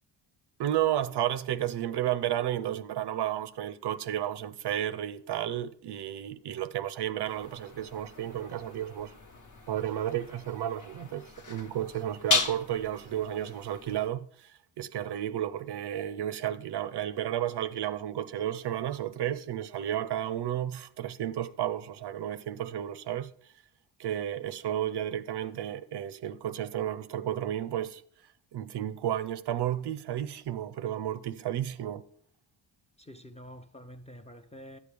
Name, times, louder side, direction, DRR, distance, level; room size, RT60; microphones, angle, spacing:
voice 1, 0.6-9.1 9.7-23.3 24.0-28.0 28.5-32.0, right 11 dB, 55° right, 0.5 m, -32 dB
sound 1, 7.3-14.1, left 4 dB, 40° left, 1.0 m, -36 dB
voice 2, 33.0-34.8, equal, 15° left, 0.5 m, -47 dB
11.0 x 6.9 x 3.3 m
cardioid pair, 95°, 49 cm